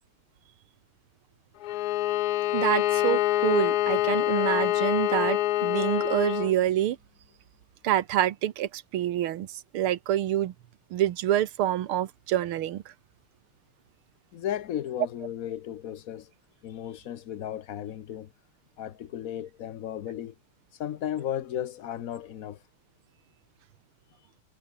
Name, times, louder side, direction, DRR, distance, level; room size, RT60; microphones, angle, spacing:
Bowed string instrument, 1.6-6.5, left 15 dB, 85° left, 0.8 m, -26 dB
voice 1, 2.5-7.0 7.8-10.5 10.9-12.8, right 12 dB, 85° right, 1.9 m, -27 dB
voice 2, 14.3-16.3 16.6-18.3 18.8-20.3 20.7-22.6, left 10 dB, 60° left, 0.9 m, -35 dB
omnidirectional pair, 2.3 m